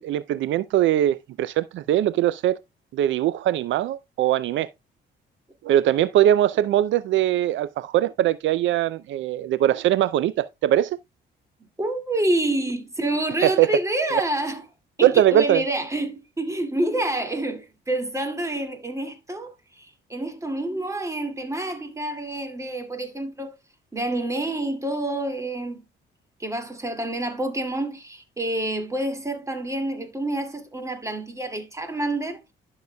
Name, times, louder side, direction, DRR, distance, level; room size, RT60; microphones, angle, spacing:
voice 1, 0.0-2.6 2.9-4.7 5.6-11.0 13.4-13.7 15.0-15.6, right 12 dB, 75° right, 0.4 m, -21 dB
voice 2, 11.8-14.6 15.0-23.5 23.9-25.8 26.4-32.4, right 1 dB, 15° right, 2.2 m, -28 dB
12.0 x 6.6 x 2.2 m
cardioid pair, 90°, 20 cm